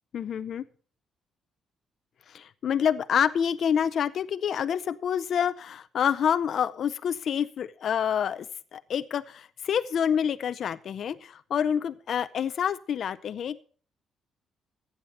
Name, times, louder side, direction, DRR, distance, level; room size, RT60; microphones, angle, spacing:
voice 1, 0.1-0.6 2.3-8.5 8.7-13.6, left 8 dB, 50° left, 12 dB, 0.6 m, -27 dB
14.5 x 8.1 x 5.5 m, 0.44 s
cardioid pair, 155°, 0 cm